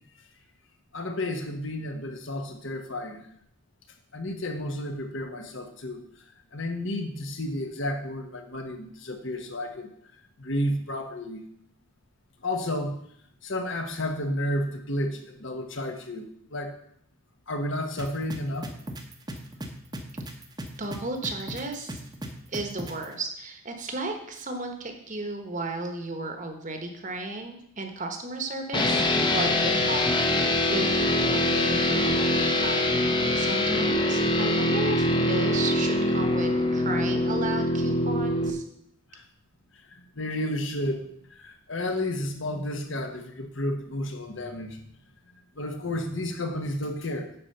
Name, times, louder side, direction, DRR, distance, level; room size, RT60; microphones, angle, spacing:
voice 1, 0.9-3.3 4.1-6.0 6.5-9.9 10.4-11.4 12.4-13.1 13.4-16.7 17.5-18.7 39.1-39.2 39.8-44.8 45.6-47.3, left 1 dB, 60° left, 5 dB, 1.2 m, -32 dB
sound 1, 18.0-23.1, right 1 dB, 20° right, 0.9 m, -36 dB
voice 2, 20.8-22.0 22.5-29.0 29.3-38.6, right 2 dB, 35° right, 5 dB, 1.1 m, -34 dB
sound 2, 28.7-38.5, left 1 dB, 20° left, 0.8 m, -24 dB
10.0 x 4.4 x 6.6 m, 0.69 s
head